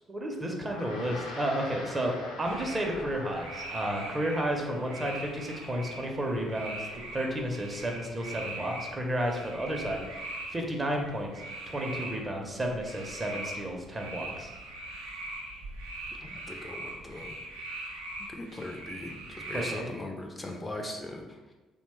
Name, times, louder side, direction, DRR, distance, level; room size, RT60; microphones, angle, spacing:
voice 1, 0.1-6.9 7.1-10.2 10.5-11.3 11.7-14.5 19.5-19.9, right 1 dB, 25° right, 1 dB, 0.6 m, -32 dB
Gong, 0.6-10.2, left 2 dB, 75° left, 0.5 m, -47 dB
sound 1, 2.4-19.8, right 2 dB, 75° right, 0.4 m, -41 dB
voice 2, 16.2-17.4 18.3-21.4, left 2 dB, 25° left, 2 dB, 0.4 m, -40 dB
2.9 x 2.1 x 3.0 m, 1.2 s
figure-of-eight pair, 50°, 0 cm